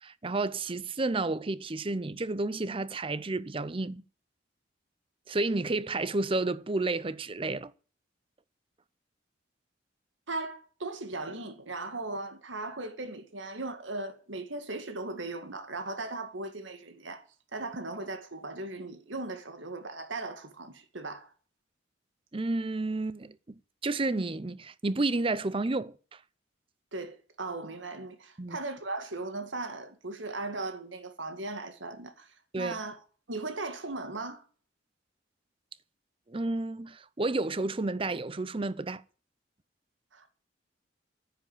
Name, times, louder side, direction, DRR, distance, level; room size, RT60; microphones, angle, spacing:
voice 1, 0.0-4.0 5.3-7.7 22.3-26.2 28.4-28.6 32.5-32.8 36.3-39.0, right 2 dB, 30° right, 0.6 m, -31 dB
voice 2, 10.3-17.2 17.5-21.3 26.9-32.3 32.6-33.0 33.3-34.4 40.1-40.3, right 2 dB, 85° right, 2.1 m, -38 dB
10.0 x 10.0 x 8.8 m
head